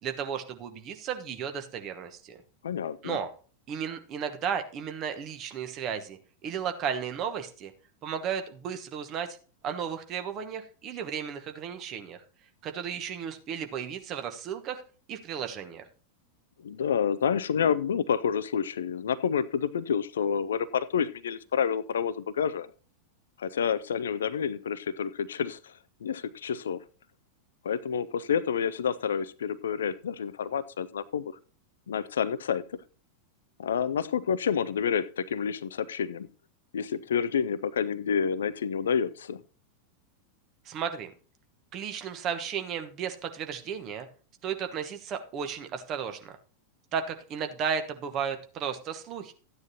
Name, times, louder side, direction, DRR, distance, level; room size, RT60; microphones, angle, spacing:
voice 1, 0.0-2.4 3.0-3.3 3.7-7.7 8.0-9.4 9.6-12.2 12.6-14.8 15.1-15.9 40.6-41.1 41.7-44.1 44.4-46.4 46.9-49.3, right 7 dB, 35° right, 7 dB, 1.2 m, -34 dB
voice 2, 2.6-3.2 16.6-22.7 23.4-25.7 26.0-26.8 27.6-31.4 31.9-32.6 33.6-36.3 36.7-39.4, left 7 dB, 65° left, 16 dB, 0.4 m, -29 dB
13.5 x 9.5 x 2.8 m, 0.38 s
figure-of-eight pair, 90°, 0 cm